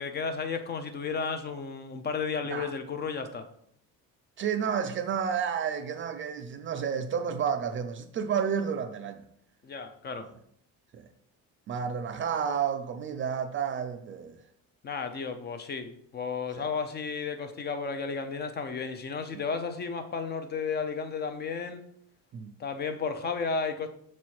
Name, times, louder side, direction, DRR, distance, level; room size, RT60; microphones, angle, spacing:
voice 1, 0.0-3.5 9.6-10.3 14.8-21.8 22.6-23.9, left 5 dB, 30° left, 0.5 m, -33 dB
voice 2, 4.4-9.2 10.9-11.0 11.7-14.4 16.6-16.7 22.3-22.5, right 7 dB, 35° right, 0.4 m, -31 dB
6.4 x 4.2 x 4.6 m
cardioid pair, 160°, 35 cm